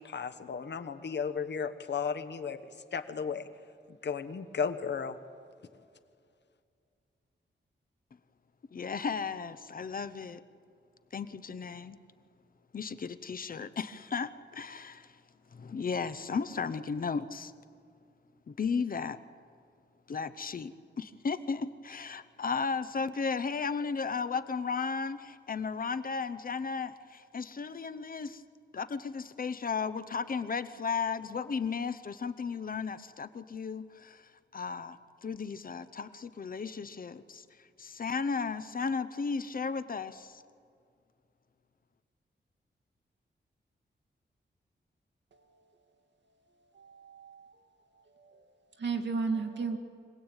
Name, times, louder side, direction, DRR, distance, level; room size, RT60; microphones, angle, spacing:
voice 1, 0.0-2.6 2.9-3.5 4.0-5.2, left 6 dB, 65° left, 10 dB, 1.2 m, -34 dB
voice 2, 8.7-10.4 11.1-12.0 12.7-15.2 15.5-17.5 18.5-19.2 20.1-28.4 28.7-37.4 37.8-40.4, left 5 dB, 45° left, 12 dB, 0.8 m, -35 dB
voice 3, 46.7-47.6 48.2-48.4 48.8-49.8, right 4 dB, 65° right, 5 dB, 2.3 m, -34 dB
25.0 x 18.5 x 9.0 m, 2.4 s
wide cardioid pair, 165°, 19 cm